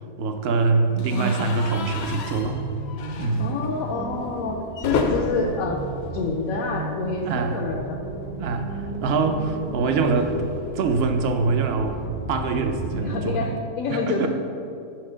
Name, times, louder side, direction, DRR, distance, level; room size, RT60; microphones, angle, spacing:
voice 1, 0.2-2.6 3.2-3.4 7.3-7.6 8.4-10.4 10.7-12.0 12.3-13.5 13.9-14.3, right 4 dB, 60° right, 6 dB, 0.7 m, -24 dB
sound 1, 1.0-7.0 7.3-7.5 7.8-7.9 9.1-11.5, left 4 dB, 60° left, 0.7 m, -33 dB
voice 2, 1.1-1.5 3.4-5.8 6.1-8.0 8.9-9.3 13.0-14.3, left 3 dB, 80° left, -1 dB, 1.0 m, -28 dB
sound 2, 1.9-13.1, right 3 dB, 85° right, 0.3 m, -34 dB
5.6 x 4.4 x 6.1 m, 2.6 s
omnidirectional pair, 1.4 m